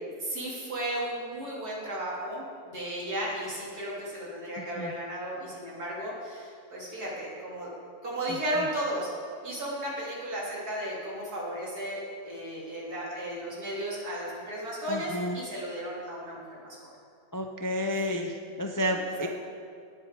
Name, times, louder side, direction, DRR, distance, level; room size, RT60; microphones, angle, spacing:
voice 1, 0.2-7.7 8.0-9.1 9.4-16.9 18.9-19.1, right 1 dB, 90° right, -5 dB, 3.6 m, -34 dB
voice 2, 8.3-8.7 14.9-15.4 17.3-19.3, equal, 25° left, 3 dB, 0.4 m, -31 dB
19.0 x 8.1 x 3.8 m, 2.4 s
omnidirectional pair, 1.6 m